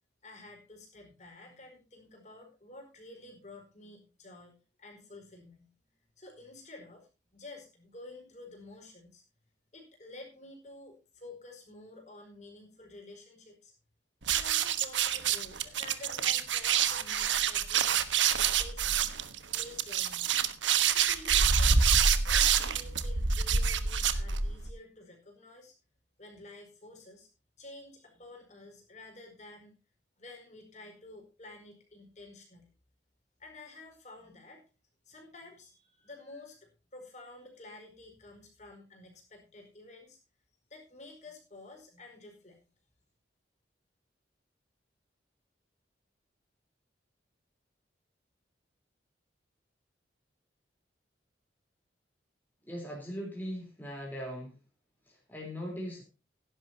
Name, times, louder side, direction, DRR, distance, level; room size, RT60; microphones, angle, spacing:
voice 1, 0.2-4.5 4.8-5.7 6.2-9.2 9.7-13.7 14.3-18.0 18.4-19.1 19.5-20.3 20.9-25.7 26.2-27.3 27.6-29.7 30.2-32.7 33.4-34.6 35.0-40.2 40.7-42.7, left 2 dB, 40° left, 3 dB, 4.8 m, -51 dB
sound 1, 14.2-24.7, right 7 dB, 85° right, 1.3 m, -27 dB
voice 2, 52.7-54.5 55.1-56.0, equal, 10° left, -1 dB, 3.7 m, -39 dB
17.0 x 11.0 x 2.8 m, 0.32 s
head